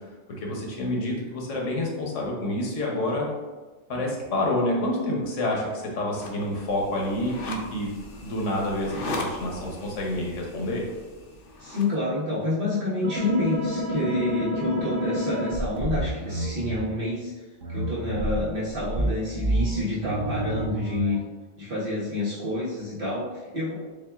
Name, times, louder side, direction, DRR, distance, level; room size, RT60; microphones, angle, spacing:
voice 1, 0.3-3.3 3.9-7.9 8.2-10.9, left 1 dB, 80° left, -2 dB, 1.2 m, -28 dB
sound 1, 6.1-11.9, left 2 dB, 55° left, 0.7 m, -38 dB
voice 2, 11.6-17.3 17.7-21.2 21.6-23.8, left 2 dB, 45° right, -8 dB, 1.4 m, -28 dB
sound 2, 13.0-16.8 17.6-21.2, right 1 dB, 85° right, 1.3 m, -29 dB
7.0 x 2.4 x 2.3 m, 1.3 s
omnidirectional pair, 1.3 m